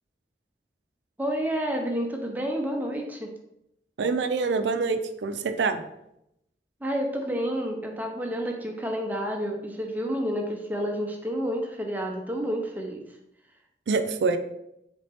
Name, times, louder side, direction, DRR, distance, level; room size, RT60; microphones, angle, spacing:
voice 1, 1.2-3.3 6.8-13.2, equal, 10° right, 1 dB, 0.5 m, -30 dB
voice 2, 4.0-5.8 13.9-14.4, right 4 dB, 80° right, 8 dB, 0.4 m, -25 dB
4.1 x 3.3 x 3.4 m, 0.82 s
head